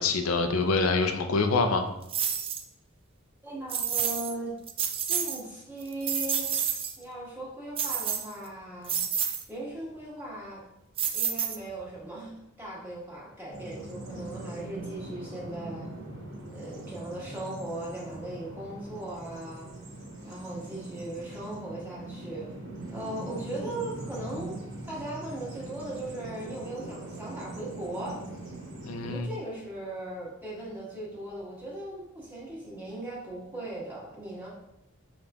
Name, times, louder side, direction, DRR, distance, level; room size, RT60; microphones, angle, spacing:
voice 1, 0.0-1.8 28.8-29.3, left 3 dB, 90° left, 6 dB, 0.5 m, -25 dB
sound 1, 2.1-2.6 3.7-4.3 4.7-5.4 5.8-7.0 7.8-8.5 8.9-9.4 11.0-11.8, right 8 dB, 25° right, 0.3 m, -29 dB
voice 2, 3.4-4.5 5.0-6.6 7.0-9.0 9.5-10.6 11.1-15.9 16.5-19.7 20.2-22.5 22.9-24.5 24.8-28.2 29.0-34.5, right 1 dB, 10° right, -7 dB, 1.4 m, -38 dB
Bird vocalization bird call bird song, 13.5-29.2, right 2 dB, 70° right, 1.6 m, -41 dB
5.3 x 3.9 x 2.3 m, 0.87 s
head